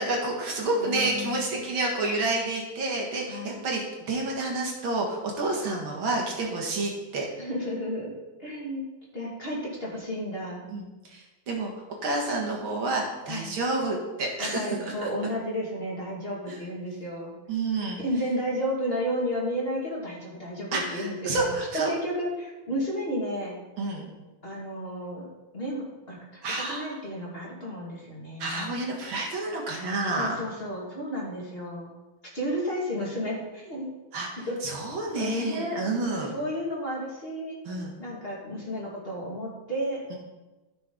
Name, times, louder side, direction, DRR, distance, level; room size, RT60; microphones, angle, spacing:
voice 1, 0.0-7.3 10.7-11.7 12.0-15.1 16.5-16.6 17.5-18.0 20.7-21.9 23.8-24.1 26.4-26.8 28.4-30.3 34.1-34.3 34.6-36.3 37.7-37.9, right 2 dB, 75° right, -1 dB, 2.6 m, -29 dB
voice 2, 0.8-1.5 3.3-3.6 7.4-8.1 8.4-8.8 9.1-10.6 13.3-13.5 14.4-17.4 18.0-21.5 21.9-23.6 24.4-25.3 25.5-26.4 26.7-28.7 30.2-31.9 32.3-33.9 34.4-34.6 35.1-35.7 36.3-37.6 38.0-40.0, equal, 30° left, -4 dB, 2.3 m, -32 dB
14.5 x 6.0 x 3.9 m, 1.1 s
omnidirectional pair, 2.2 m